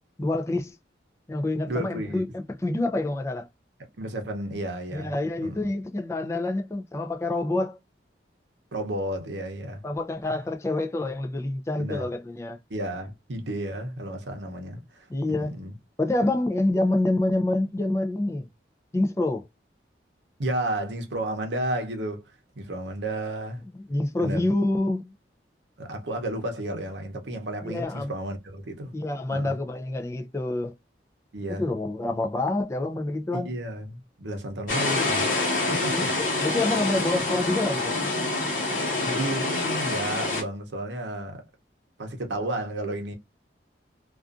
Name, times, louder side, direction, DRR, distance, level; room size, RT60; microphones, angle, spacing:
voice 1, 0.2-0.8 1.3-3.5 4.9-7.8 9.8-12.6 15.1-15.5 16.0-18.5 18.9-19.5 23.7-25.1 27.6-28.1 28.9-30.7 31.5-33.5 35.9-36.0 36.4-38.0, left 2 dB, 15° left, 0.3 m, -27 dB
voice 2, 1.7-2.2 4.0-5.1 5.4-5.7 8.7-9.8 10.3-10.4 11.8-12.1 12.7-15.7 20.4-23.6 24.2-24.5 25.8-28.9 29.3-29.6 31.3-31.7 33.3-36.1 39.0-41.4 42.0-43.1, right 1 dB, 75° right, 0.7 m, -32 dB
sound 1, 34.7-40.4, left 2 dB, 50° left, 1.1 m, -26 dB
2.5 x 2.3 x 2.4 m
head